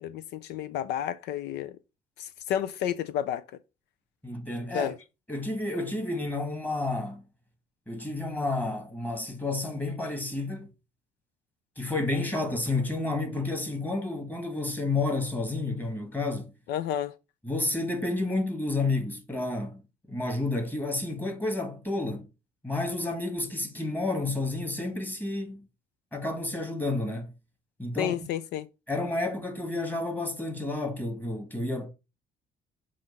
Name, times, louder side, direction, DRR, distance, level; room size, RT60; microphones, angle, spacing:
voice 1, 0.0-1.8 2.2-3.4 4.7-4.9 16.7-17.1 28.0-28.7, left 10 dB, 80° left, 0.5 m, -31 dB
voice 2, 4.2-4.9 5.3-7.2 7.9-10.7 11.8-16.5 17.4-19.8 20.1-22.3 22.6-25.7 26.1-27.3 27.8-28.3 28.9-31.9, left 2 dB, 10° left, 1.6 m, -30 dB
7.5 x 2.5 x 5.3 m
cardioid pair, 110°, 17 cm